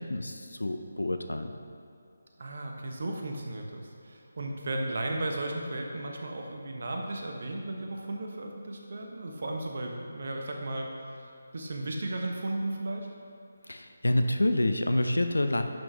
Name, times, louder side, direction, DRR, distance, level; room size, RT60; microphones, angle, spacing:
voice 1, 0.0-1.5 13.7-15.6, left 1 dB, 75° left, 7 dB, 0.7 m, -28 dB
voice 2, 2.4-13.1, right 2 dB, 50° right, 2 dB, 1.1 m, -35 dB
10.5 x 6.1 x 3.4 m, 2.5 s
figure-of-eight pair, 155°, 0 cm